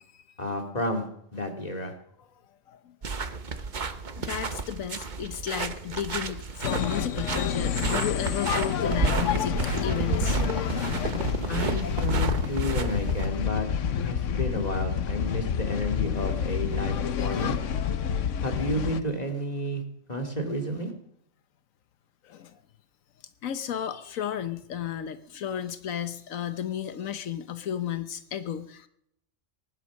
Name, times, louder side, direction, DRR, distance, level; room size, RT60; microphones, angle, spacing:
voice 1, 0.4-1.1 1.3-1.9 11.5-13.7 14.1-17.6 18.4-19.8 20.1-20.9, equal, 30° left, 3 dB, 2.9 m, -31 dB
sound 1, 3.0-13.3, right 4 dB, 40° right, 1.0 m, -31 dB
voice 2, 4.2-10.4 22.2-22.6 23.4-28.9, left 9 dB, 90° left, 10 dB, 1.3 m, -33 dB
sound 2, 6.6-19.0, left 8 dB, 70° left, 1.2 m, -28 dB
19.0 x 11.0 x 6.3 m, 0.72 s
omnidirectional pair, 1.4 m